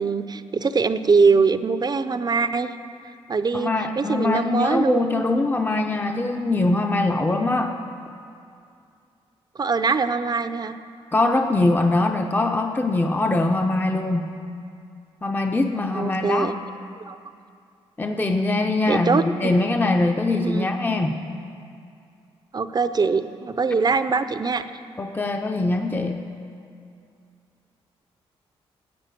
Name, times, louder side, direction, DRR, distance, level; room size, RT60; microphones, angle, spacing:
voice 1, 0.0-2.7 3.3-5.2 9.6-10.8 15.9-16.6 17.1-17.2 18.9-19.5 20.4-20.7 22.5-24.6, right 4 dB, 40° right, 12 dB, 0.6 m, -22 dB
voice 2, 3.5-7.7 11.1-14.3 15.2-16.5 18.0-21.2 25.0-26.2, left 2 dB, 20° left, 4 dB, 0.7 m, -22 dB
12.0 x 8.2 x 7.7 m, 2.4 s
cardioid pair, 65°, 11 cm